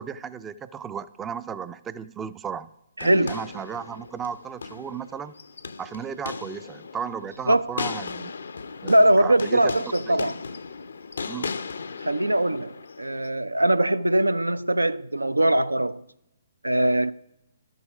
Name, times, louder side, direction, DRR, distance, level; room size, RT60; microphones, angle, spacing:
voice 1, 0.0-2.7 3.0-5.3 5.8-8.3 8.8-9.6 10.1-10.3 11.3-11.6, right 7 dB, 15° right, 0.3 m, -35 dB
sound 1, 3.0-13.3, left 4 dB, 70° left, 0.5 m, -37 dB
voice 2, 3.0-3.4 7.5-7.7 8.8-10.3 12.0-16.0 16.6-17.1, right 1 dB, 90° right, 0.3 m, -21 dB
12.0 x 6.5 x 4.8 m
figure-of-eight pair, 130°, 0 cm